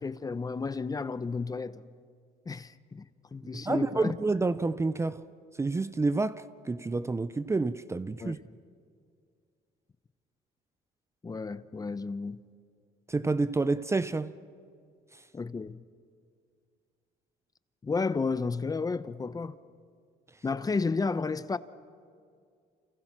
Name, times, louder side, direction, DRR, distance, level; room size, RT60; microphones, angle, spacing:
voice 1, 0.0-1.8 2.5-3.1 3.3-4.2 8.2-8.3 11.2-12.4 15.3-15.8 17.8-19.5 20.4-21.6, left 4 dB, 20° left, 0.8 m, -32 dB
voice 2, 3.5-5.2 5.6-8.4 13.1-14.3, right 3 dB, 15° right, 0.6 m, -29 dB
30.0 x 28.5 x 6.1 m
cardioid pair, 110°, 17 cm